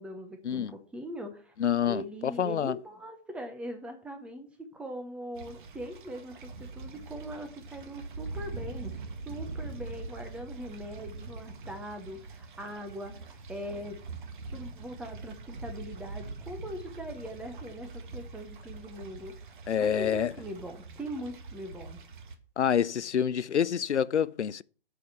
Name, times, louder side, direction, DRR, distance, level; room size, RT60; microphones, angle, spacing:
voice 1, 0.0-1.5 1.9-8.9 9.3-14.0 14.5-22.0, equal, 5° right, 0.6 m, -41 dB
voice 2, 1.6-2.7 19.7-20.3 22.6-24.6, left 8 dB, 85° left, 0.5 m, -27 dB
sound 1, 5.4-22.4, right 3 dB, 45° right, 1.5 m, -43 dB
8.4 x 5.0 x 7.0 m
figure-of-eight pair, 135°, 34 cm